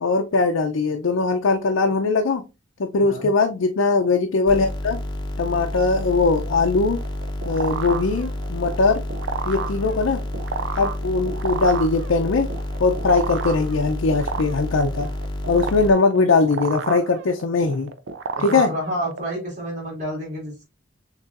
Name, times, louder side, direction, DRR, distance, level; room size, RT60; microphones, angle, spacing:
voice 1, 0.0-2.4 2.8-5.0 5.4-7.0 7.5-9.0 9.5-10.2 10.8-12.5 12.8-15.1 15.5-17.9 18.4-18.7, left 3 dB, 90° left, 3 dB, 0.5 m, -20 dB
sound 1, 4.5-15.9, left 1 dB, 25° left, 0.8 m, -30 dB
sound 2, 6.9-19.3, right 5 dB, 65° right, 0.5 m, -32 dB
voice 2, 18.3-20.6, equal, 40° right, -2 dB, 2.3 m, -30 dB
6.5 x 3.0 x 2.4 m, 0.28 s
head